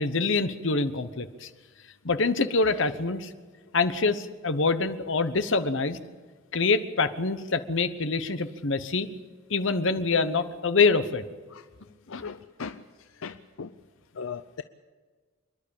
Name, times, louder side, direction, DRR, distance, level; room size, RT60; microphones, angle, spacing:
voice 1, 0.0-1.5 2.0-3.3 3.7-6.0 6.5-9.1 9.5-11.2 12.1-12.2, left 4 dB, 65° left, 11 dB, 1.0 m, -25 dB
voice 2, 12.1-12.8 13.2-13.7 14.2-14.6, left 5 dB, 85° left, 11 dB, 0.6 m, -38 dB
27.0 x 11.0 x 8.8 m, 1.4 s
head